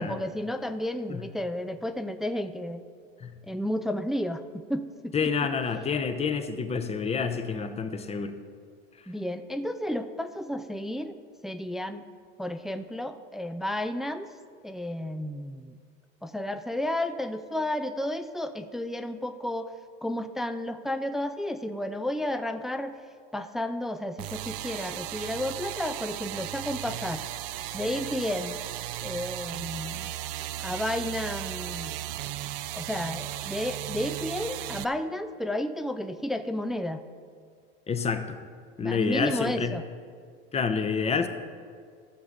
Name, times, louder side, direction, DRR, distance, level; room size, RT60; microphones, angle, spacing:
voice 1, 0.0-2.8 3.4-5.3 9.1-11.2 11.4-12.0 12.4-14.3 14.6-15.8 16.2-19.7 20.0-22.9 23.3-27.2 27.7-28.6 29.0-30.1 30.6-32.0 32.7-37.0 38.8-39.8, left 1 dB, ahead, 8 dB, 0.4 m, -32 dB
voice 2, 5.1-8.3 37.9-38.4 38.8-39.7 40.5-41.3, left 5 dB, 20° left, 8 dB, 0.8 m, -28 dB
sound 1, 24.2-34.8, right 13 dB, 70° right, 0.6 m, -36 dB
14.5 x 7.1 x 4.0 m, 2.1 s
hypercardioid pair, 95°, 29 cm